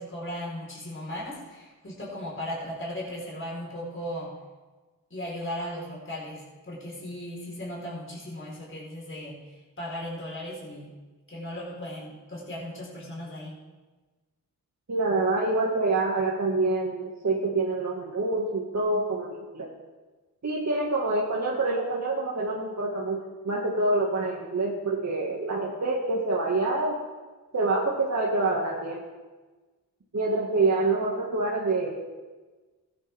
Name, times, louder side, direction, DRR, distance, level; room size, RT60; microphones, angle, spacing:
voice 1, 0.0-4.3 5.1-10.9 11.3-13.5, equal, 30° left, -4 dB, 4.4 m, -37 dB
voice 2, 14.9-19.7 20.4-23.2 23.4-27.0 27.5-29.1 30.1-32.0, right 2 dB, 45° right, -3 dB, 2.0 m, -26 dB
15.5 x 9.8 x 3.6 m, 1.3 s
cardioid pair, 55°, 38 cm